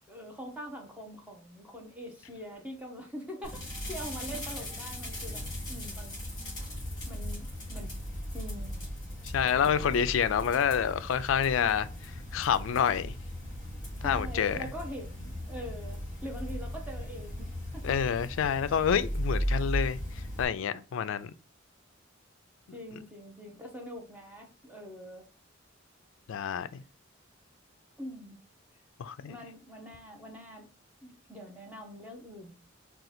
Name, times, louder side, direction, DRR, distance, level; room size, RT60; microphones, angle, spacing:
voice 1, 0.1-6.2 7.1-7.9 8.3-8.9 14.0-18.0 22.7-25.2 28.0-28.4 29.2-30.7 31.0-32.6, equal, 5° right, 0.8 m, -43 dB
sound 1, 3.4-20.4, equal, 20° left, 2.0 m, -37 dB
voice 2, 9.2-13.2 14.0-14.6 17.8-21.3 26.3-26.8 29.0-29.3, left 7 dB, 75° left, 0.3 m, -28 dB
3.7 x 2.4 x 4.2 m
head